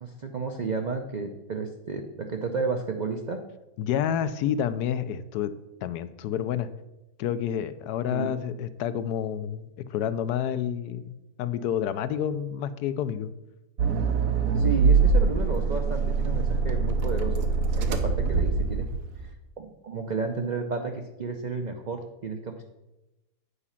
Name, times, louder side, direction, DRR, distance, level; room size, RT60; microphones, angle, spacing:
voice 1, 0.0-3.4 8.1-8.3 14.6-17.5 17.8-18.9 19.6-22.6, right 4 dB, 65° right, 4 dB, 0.4 m, -32 dB
voice 2, 3.8-5.5 5.8-6.7 7.2-13.3, left 9 dB, 85° left, 13 dB, 1.1 m, -29 dB
Accelerating revving vroom, 13.8-19.2, right 4 dB, 85° right, 1.3 m, -24 dB
8.4 x 4.9 x 5.7 m, 0.99 s
omnidirectional pair, 1.6 m